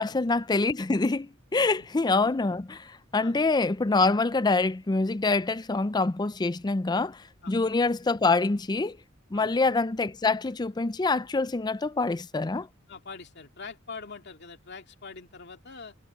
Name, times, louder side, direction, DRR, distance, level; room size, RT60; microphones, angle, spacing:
voice 1, 0.0-9.0 9.3-12.7, left 3 dB, 20° left, 0.5 m, -25 dB
voice 2, 12.9-16.0, left 4 dB, 55° left, 2.6 m, -43 dB
head